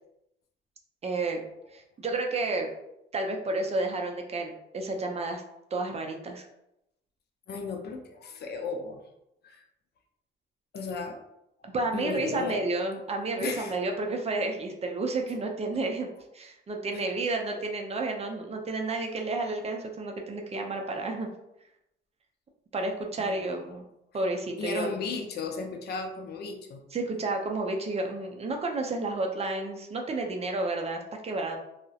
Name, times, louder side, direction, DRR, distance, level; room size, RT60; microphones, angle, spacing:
voice 1, 1.0-1.4 1.7-2.7 3.1-5.4 5.7-6.4 11.6-16.1 16.3-21.3 22.7-23.8 24.1-24.9 26.9-31.6, right 2 dB, 30° right, 2 dB, 0.4 m, -31 dB
voice 2, 7.5-9.0 9.4-9.6 10.7-11.2 11.9-12.6 13.4-13.7 16.9-17.0 23.2-23.6 24.6-26.8, left 4 dB, 55° left, 4 dB, 0.4 m, -35 dB
2.3 x 2.0 x 2.6 m, 0.84 s
cardioid pair, 90°, 20 cm